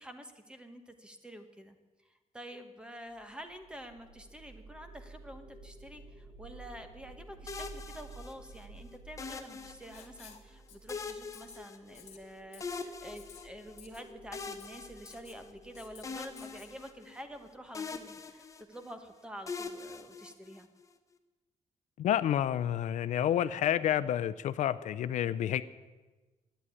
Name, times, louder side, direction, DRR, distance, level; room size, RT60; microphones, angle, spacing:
voice 1, 0.0-1.8 2.0-20.7, equal, 5° right, 7 dB, 1.2 m, -48 dB
sound 1, 3.1-18.3, right 2 dB, 50° right, 5.5 m, -53 dB
sound 2, 7.5-8.6 9.2-10.3 10.9-12.3 12.6-13.8 14.3-15.7 16.0-17.4 17.7-18.9 19.5-20.8, left 4 dB, 25° left, 0.8 m, -43 dB
Writing, 9.9-10.4 10.7-11.0 11.3-11.6 11.9-12.2 12.5-12.8 13.2-13.4 13.8-14.0 14.4-14.7 15.1-15.4 15.7-16.0 16.4-16.7, left 8 dB, 60° left, 1.9 m, -54 dB
voice 2, 22.0-25.6, left 10 dB, 75° left, 14 dB, 0.5 m, -29 dB
11.5 x 9.1 x 9.7 m, 1.2 s
wide cardioid pair, 165°, 13 cm